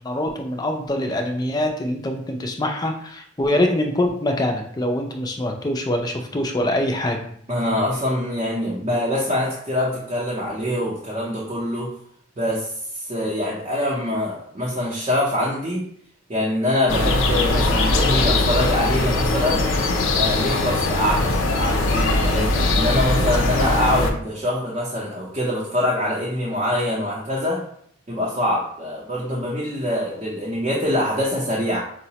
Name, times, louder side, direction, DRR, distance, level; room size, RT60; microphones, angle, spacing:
voice 1, 0.0-7.2, left 1 dB, 20° left, 3 dB, 0.4 m, -24 dB
voice 2, 7.5-11.9 12.4-15.8 16.3-19.6 20.1-27.6 28.1-31.8, left 1 dB, 30° right, -5 dB, 0.6 m, -24 dB
sound 1, 16.9-24.1, left 2 dB, 80° left, 0.5 m, -20 dB
4.7 x 2.1 x 2.8 m, 0.65 s
head